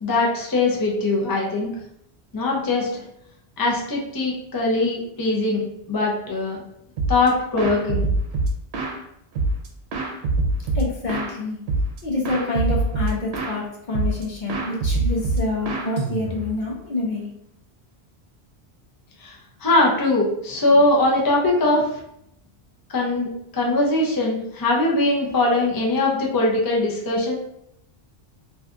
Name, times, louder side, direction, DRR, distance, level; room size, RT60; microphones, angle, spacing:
voice 1, 0.0-1.7 2.3-3.0 3.6-6.6 7.1-8.1 19.2-19.3 19.6-21.9 22.9-27.4, left 2 dB, 30° left, -3 dB, 0.4 m, -21 dB
sound 1, 7.0-7.3 7.6-9.0 9.3-11.3 11.7-12.0 12.2-13.6 13.9-14.2 14.5-16.6, right 2 dB, 85° right, 0.8 m, -24 dB
voice 2, 10.7-11.6 12.0-17.3, left 2 dB, 50° left, -2 dB, 0.8 m, -27 dB
2.6 x 2.3 x 3.6 m, 0.77 s
omnidirectional pair, 1.1 m